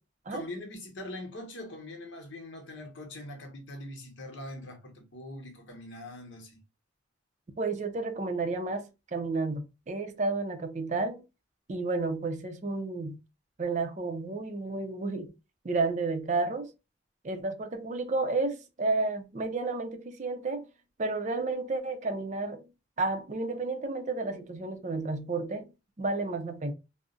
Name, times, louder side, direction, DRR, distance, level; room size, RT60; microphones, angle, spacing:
voice 1, 0.3-6.6, left 1 dB, 70° left, 0.9 m, -42 dB
voice 2, 7.6-11.2 11.7-13.2 13.6-15.3 15.6-16.7 17.2-20.7 21.0-22.7 23.0-26.7, right 3 dB, 35° right, 0.4 m, -31 dB
2.4 x 2.0 x 3.7 m
head